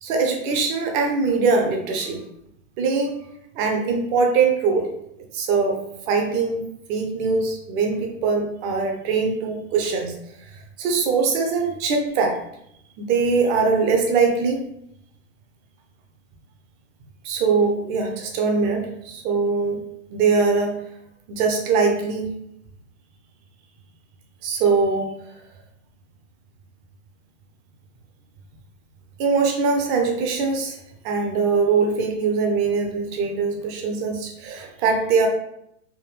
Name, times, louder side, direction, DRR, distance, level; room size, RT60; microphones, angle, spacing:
voice 1, 0.0-2.2 2.8-3.1 3.6-4.9 5.3-6.6 6.9-10.2 10.8-12.4 13.0-14.6 17.2-19.8 20.1-20.8 21.3-22.3 24.4-25.1 29.2-30.8 31.0-35.3, right 4 dB, 25° right, 3 dB, 0.5 m, -22 dB
3.5 x 2.1 x 3.2 m, 0.78 s
hypercardioid pair, 125°, 39 cm